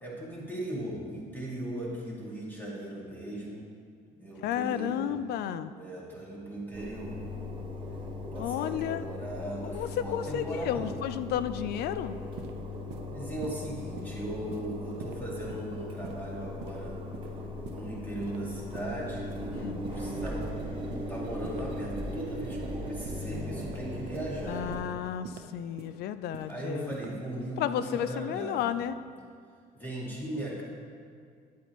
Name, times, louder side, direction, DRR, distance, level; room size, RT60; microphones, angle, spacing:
voice 1, 0.0-3.6 4.2-5.2 5.8-7.2 8.2-11.0 13.1-17.0 17.5-24.8 26.5-28.8 29.7-30.6, right 1 dB, 10° left, -5 dB, 2.1 m, -38 dB
voice 2, 4.4-5.7 8.4-9.1 9.6-12.2 19.5-19.8 24.5-26.9 27.6-29.0, left 10 dB, 70° left, 13 dB, 0.4 m, -32 dB
Engine, 6.7-24.8, left 1 dB, 30° right, 1.3 m, -38 dB
sound 1, 12.4-12.5 12.9-13.1 13.4-13.6 14.0-14.1 14.5-14.7 15.0-15.2 15.5-15.7 16.0-16.2 16.6-16.8 17.1-17.3 17.7-17.8 18.2-18.4 18.7-18.9 19.3-19.5 19.8-20.0 20.4-20.5 20.9-21.1 21.4-21.6 22.0-22.1 22.5-22.7 23.0-23.2 23.6-23.8 24.1-24.3 24.7-24.9 25.2-25.4 25.8-25.9 26.3-26.5 26.9-27.1, right 7 dB, 80° right, 0.7 m, -43 dB
9.4 x 8.1 x 3.1 m, 2.2 s
cardioid pair, 110°, 17 cm